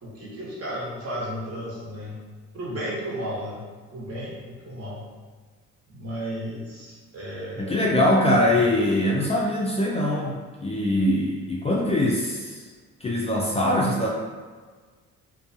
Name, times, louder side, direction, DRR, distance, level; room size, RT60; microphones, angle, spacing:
voice 1, 0.0-2.2 2.5-3.6 3.9-5.0 5.9-7.9, equal, 50° right, -6 dB, 1.0 m, -34 dB
voice 2, 7.6-12.6 13.0-14.1, left 1 dB, 20° left, -4 dB, 0.3 m, -22 dB
2.6 x 2.2 x 2.6 m, 1.4 s
cardioid pair, 90°, 30 cm